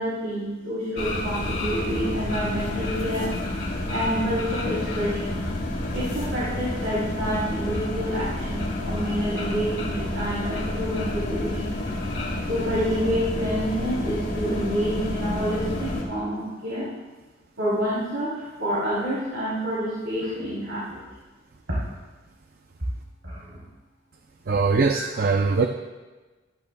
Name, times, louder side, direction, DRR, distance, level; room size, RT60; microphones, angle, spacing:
voice 1, 0.0-3.3 3.9-5.4 5.9-11.8 12.5-16.9 17.6-21.0 21.7-21.8 23.2-23.6 24.9-25.0, equal, 85° right, -9 dB, 3.3 m, -28 dB
sound 1, 1.0-16.0, left 1 dB, 50° left, 2.6 m, -29 dB
voice 2, 24.5-25.7, right 4 dB, 55° right, 5 dB, 0.5 m, -21 dB
13.5 x 13.5 x 2.2 m, 1.3 s
head